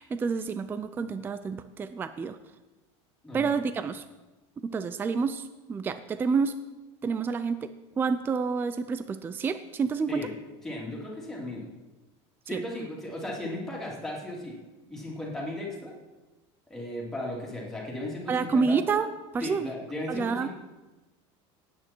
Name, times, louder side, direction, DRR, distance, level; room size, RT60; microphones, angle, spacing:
voice 1, 0.0-2.4 3.3-4.0 4.6-6.6 7.0-7.7 8.0-10.2 12.5-12.6 18.3-19.1 19.3-19.7 20.1-20.5, right 5 dB, 15° right, 11 dB, 0.4 m, -28 dB
voice 2, 10.6-11.6 12.5-14.5 14.9-15.9 16.7-18.8 19.4-20.5, left 1 dB, 5° left, -4 dB, 3.0 m, -36 dB
17.5 x 9.1 x 4.5 m, 1.1 s
cardioid pair, 160°, 14 cm